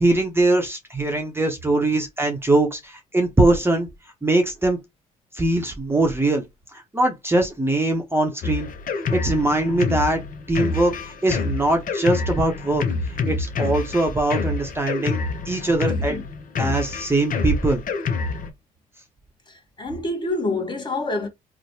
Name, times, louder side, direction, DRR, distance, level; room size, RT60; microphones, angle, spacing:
voice 1, 0.0-3.9 4.2-4.8 5.3-6.4 6.7-8.7 9.1-10.2 10.5-12.8 13.3-15.2 15.4-16.2 16.6-17.8, right 2 dB, 15° right, 0.8 m, -21 dB
Drum kit, 8.4-18.5, left 4 dB, 50° left, 0.7 m, -27 dB
voice 2, 15.9-16.2 19.5-21.3, left 2 dB, 25° left, 1.1 m, -27 dB
3.1 x 2.1 x 2.7 m
hypercardioid pair, 60°, 18 cm